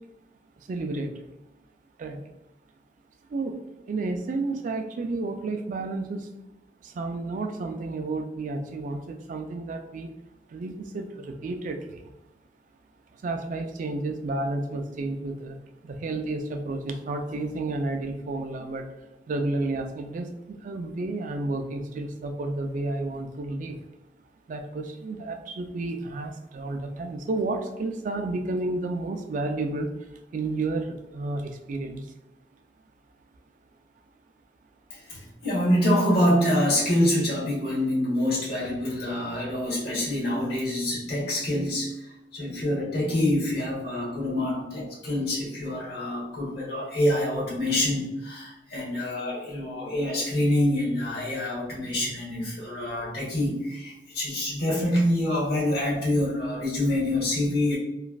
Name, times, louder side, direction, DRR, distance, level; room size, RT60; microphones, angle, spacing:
voice 1, 0.7-1.3 2.0-2.2 3.3-3.6 3.8-6.3 6.8-10.1 10.5-12.1 13.1-15.6 15.8-23.8 24.5-32.1, right 2 dB, 45° right, 5 dB, 0.3 m, -31 dB
voice 2, 34.9-57.8, left 1 dB, 60° left, -5 dB, 1.2 m, -26 dB
3.0 x 2.4 x 2.3 m, 0.90 s
head